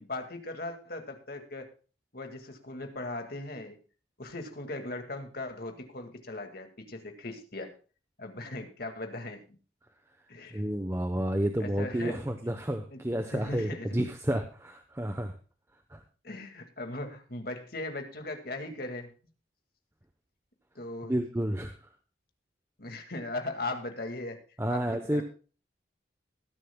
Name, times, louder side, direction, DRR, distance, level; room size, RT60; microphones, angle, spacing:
voice 1, 0.0-1.7 2.1-3.8 4.2-7.7 8.2-9.6 10.3-10.6 11.1-11.2 11.6-12.2 12.9-13.0 13.3-14.0 16.2-19.1 20.8-21.2 22.8-24.4 24.7-25.2, left 2 dB, 50° left, 5 dB, 2.0 m, -38 dB
voice 2, 10.5-15.3 15.9-16.0 21.0-21.7 24.6-25.2, right 1 dB, 15° right, 7 dB, 0.8 m, -30 dB
20.5 x 10.5 x 2.2 m, 0.37 s
head